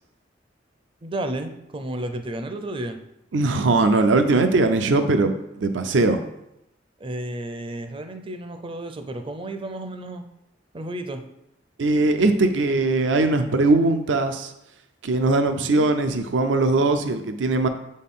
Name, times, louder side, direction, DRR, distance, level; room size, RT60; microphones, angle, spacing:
voice 1, 1.0-3.0 7.0-10.2 10.7-11.2 15.6-15.9, right 1 dB, 30° right, 7 dB, 0.5 m, -32 dB
voice 2, 3.3-6.2 11.8-14.5 15.0-17.7, right 2 dB, 75° right, 8 dB, 0.5 m, -20 dB
7.4 x 4.2 x 3.6 m, 0.84 s
head